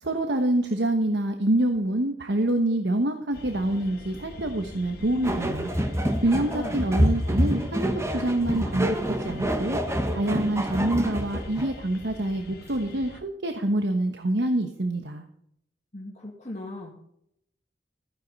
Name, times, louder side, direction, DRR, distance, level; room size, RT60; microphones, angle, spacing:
voice 1, 0.0-5.7 6.2-9.8 10.1-15.2, right 1 dB, 75° right, 6 dB, 1.2 m, -26 dB
sound 1, 3.3-13.2, left 1 dB, 65° left, 2.0 m, -44 dB
sound 2, 5.2-11.8, equal, 15° right, 1.2 m, -27 dB
voice 2, 6.4-6.9 15.9-16.9, left 1 dB, 40° left, -1 dB, 2.0 m, -38 dB
15.0 x 9.9 x 4.1 m, 0.73 s
head